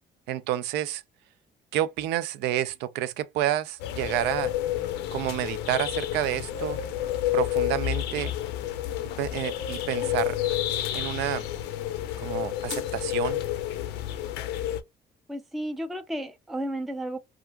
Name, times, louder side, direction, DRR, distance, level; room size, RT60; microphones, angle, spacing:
voice 1, 0.3-1.0 1.7-4.5 5.1-6.8 7.3-8.3 9.2-10.4 10.9-11.4 12.2-13.4, right 12 dB, 85° right, 0.4 m, -29 dB
sound 1, 3.8-14.8, left 12 dB, 85° left, 0.5 m, -30 dB
voice 2, 15.3-17.2, right 1 dB, ahead, 0.3 m, -33 dB
3.3 x 2.4 x 2.2 m
cardioid pair, 110°, 17 cm